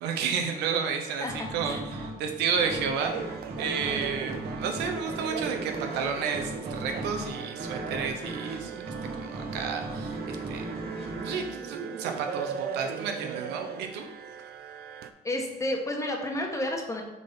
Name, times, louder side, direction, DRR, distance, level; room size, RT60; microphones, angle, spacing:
voice 1, 0.0-3.1 3.6-8.8 9.2-10.6 11.2-14.1, right 6 dB, 90° right, 4 dB, 0.9 m, -31 dB
voice 2, 1.2-1.8 15.2-17.0, left 1 dB, 20° left, 1 dB, 1.3 m, -31 dB
sound 1, 1.3-12.5, right 2 dB, 35° right, 1.3 m, -38 dB
sound 2, 3.0-15.1, right 7 dB, 65° right, 0.5 m, -38 dB
7.2 x 3.9 x 4.1 m, 1.0 s
cardioid pair, 110°, 17 cm